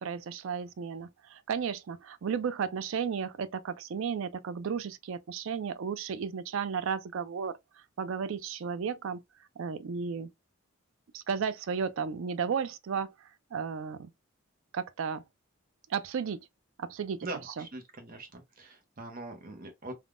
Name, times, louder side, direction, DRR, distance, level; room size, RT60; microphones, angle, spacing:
voice 1, 0.0-7.5 8.0-9.2 9.6-10.3 11.1-14.1 14.7-15.2 15.9-16.5 16.8-17.3 17.6-17.7, right 6 dB, 65° right, 0.4 m, -34 dB
voice 2, 17.2-19.9, right 2 dB, 40° right, 0.7 m, -42 dB
3.4 x 2.2 x 2.4 m
head